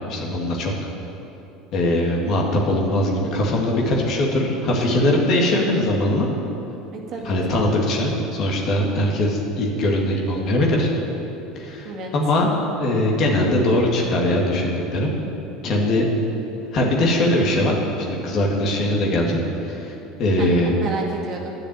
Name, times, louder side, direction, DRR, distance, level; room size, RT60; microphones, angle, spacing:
voice 1, 0.1-0.7 1.7-6.3 7.2-10.9 11.6-12.5 12.7-15.1 15.6-16.0 16.7-17.8 18.1-19.9 20.2-20.7, left 1 dB, 50° left, -1 dB, 2.2 m, -21 dB
voice 2, 6.9-7.6 11.8-12.1 20.4-21.5, right 2 dB, 50° right, 0 dB, 1.9 m, -31 dB
9.8 x 6.5 x 8.9 m, 2.9 s
hypercardioid pair, 75°, 0 cm